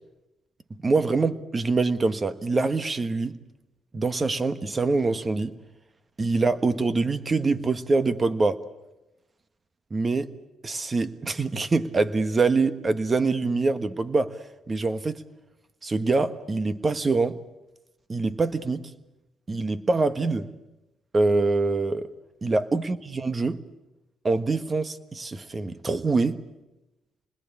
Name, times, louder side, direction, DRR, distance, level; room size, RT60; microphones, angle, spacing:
voice 1, 0.8-3.3 3.9-5.5 6.2-8.6 9.9-10.3 10.6-14.3 14.7-15.2 15.8-17.4 18.1-18.9 19.5-20.5 21.1-22.1 22.4-23.6 24.2-26.4, right 3 dB, 30° right, 1.4 m, -24 dB
27.0 x 21.0 x 8.6 m
cardioid pair, 90°, 0 cm